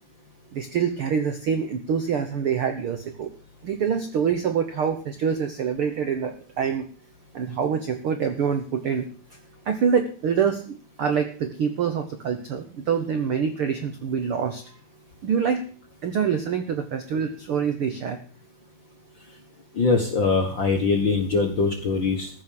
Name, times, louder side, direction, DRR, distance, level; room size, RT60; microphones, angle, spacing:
voice 1, 0.5-3.3 3.6-6.9 7.3-9.1 9.6-14.6 15.2-15.7 16.0-18.2, right 7 dB, 75° right, 7 dB, 1.2 m, -25 dB
voice 2, 19.8-22.3, left 4 dB, 50° left, 3 dB, 1.4 m, -22 dB
14.5 x 6.4 x 8.6 m, 0.43 s
omnidirectional pair, 4.2 m